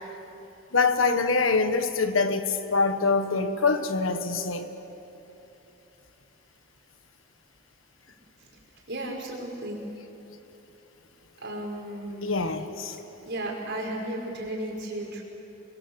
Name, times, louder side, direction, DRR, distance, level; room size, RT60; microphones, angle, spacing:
voice 1, 0.7-4.7 12.2-13.0, left 4 dB, 80° left, 9 dB, 1.6 m, -24 dB
voice 2, 8.9-9.9 11.4-12.3 13.3-15.2, right 1 dB, 60° right, 0 dB, 5.6 m, -34 dB
28.0 x 22.5 x 8.2 m, 3.0 s
head